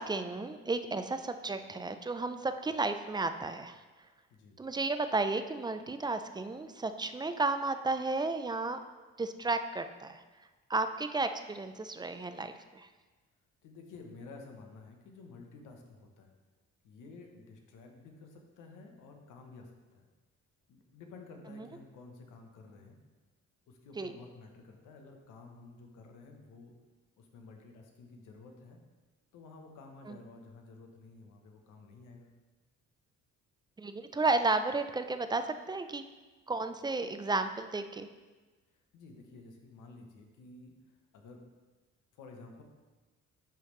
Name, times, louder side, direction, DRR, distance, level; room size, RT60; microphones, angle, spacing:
voice 1, 0.0-3.8 4.6-8.8 9.2-10.2 10.7-12.9 21.5-21.7 24.0-24.1 30.1-30.2 33.8-36.0 36.5-38.1, right 3 dB, 15° right, 9 dB, 0.3 m, -33 dB
voice 2, 13.6-16.3 16.8-20.1 20.7-23.0 23.7-26.8 27.2-28.8 29.3-32.3 38.9-40.7 41.1-41.5 42.1-42.6, left 3 dB, 85° left, 3 dB, 1.0 m, -52 dB
10.0 x 3.4 x 3.1 m, 1.3 s
cardioid pair, 90°, 30 cm